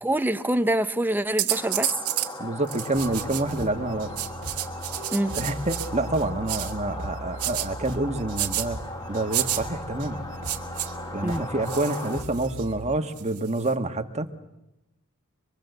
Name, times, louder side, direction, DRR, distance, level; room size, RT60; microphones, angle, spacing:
voice 1, 0.0-2.0 5.1-5.4 11.2-11.5, right 1 dB, 10° right, 0.8 m, -25 dB
sound 1, 1.4-2.3 2.7-3.6 4.2-5.9 6.5-6.7 7.4-7.7 8.4-8.7 9.3-9.6 10.4-10.9 11.7-12.6 13.2-13.7, right 14 dB, 80° right, 2.0 m, -30 dB
sound 2, 1.5-12.2, left 2 dB, 15° left, 1.6 m, -38 dB
voice 2, 2.4-4.1 5.3-8.8 9.1-10.2 11.1-14.3, right 2 dB, 30° right, 1.5 m, -27 dB
sound 3, 2.9-13.0, right 1 dB, 60° right, 2.2 m, -39 dB
25.0 x 23.0 x 8.0 m
head